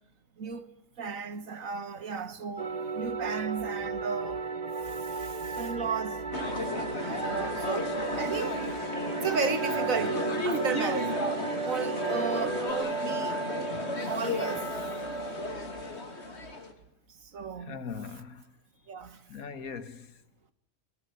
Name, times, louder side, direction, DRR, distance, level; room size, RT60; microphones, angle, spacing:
voice 1, 0.4-0.7 1.0-4.4 4.8-6.2 7.0-8.6 9.2-10.2 10.4-11.1 11.6-13.4 14.1-14.9 17.2-17.8 18.9-19.2, right 5 dB, 70° right, 1.9 m, -34 dB
sound 1, 2.6-12.7, right 4 dB, 30° right, 1.3 m, -35 dB
sound 2, 6.3-16.7, equal, 50° left, 3.0 m, -33 dB
voice 2, 17.6-18.6 19.3-20.2, left 6 dB, 85° left, 1.9 m, -41 dB
23.0 x 22.0 x 9.5 m
omnidirectional pair, 1.5 m